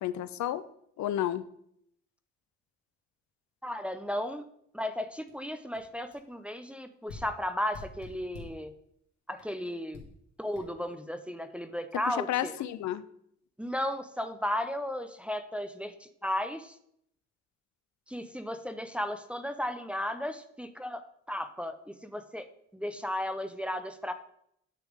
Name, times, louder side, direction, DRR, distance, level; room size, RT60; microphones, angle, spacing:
voice 1, 0.0-0.6 1.0-1.4 12.1-13.0, left 12 dB, 70° left, 14 dB, 0.5 m, -31 dB
voice 2, 3.6-4.4 4.7-8.7 9.3-10.1 10.4-12.5 13.6-16.8 18.1-22.5 22.7-24.1, left 1 dB, 5° right, 8 dB, 0.5 m, -35 dB
sound 1, 5.3-5.4 5.7-5.8 6.1-6.3 7.1-8.6 9.4-9.5 9.9-10.2 10.5-10.6, left 3 dB, 85° left, 2.0 m, -47 dB
9.4 x 3.3 x 5.0 m, 0.71 s
cardioid pair, 90°, 30 cm